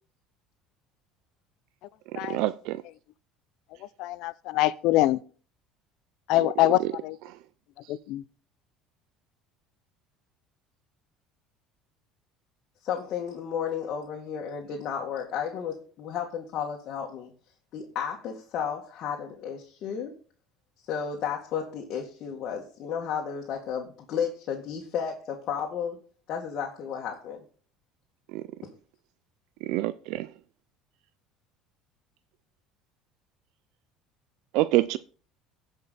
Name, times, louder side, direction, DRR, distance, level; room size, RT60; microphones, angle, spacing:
voice 1, 2.1-2.8 28.3-28.4 29.6-30.3 34.5-35.0, right 16 dB, 70° right, 0.5 m, -26 dB
voice 2, 4.0-5.2 6.3-7.2 7.9-8.2, left 16 dB, 70° left, 0.6 m, -24 dB
voice 3, 12.8-17.3 17.7-20.2 20.9-26.0 26.3-27.4 28.6-28.7, left 7 dB, 55° left, 2.0 m, -33 dB
15.5 x 5.4 x 4.1 m
cardioid pair, 120°, 0 cm